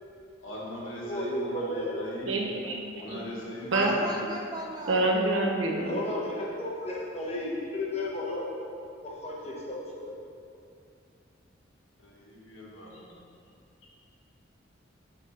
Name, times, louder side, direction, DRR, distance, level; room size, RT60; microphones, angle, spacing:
voice 1, 0.4-2.4 2.9-4.3 12.0-13.1, equal, 90° left, -4 dB, 1.3 m, -40 dB
voice 2, 1.0-2.0 5.8-8.5 9.0-10.2, left 1 dB, 30° left, -4 dB, 0.9 m, -33 dB
voice 3, 2.3-2.8 3.0-3.2 3.7-3.9 4.9-6.0, right 2 dB, 80° right, 0 dB, 0.8 m, -26 dB
voice 4, 3.7-5.0, right 1 dB, 20° right, 0 dB, 0.5 m, -34 dB
4.8 x 3.7 x 5.5 m, 2.5 s
head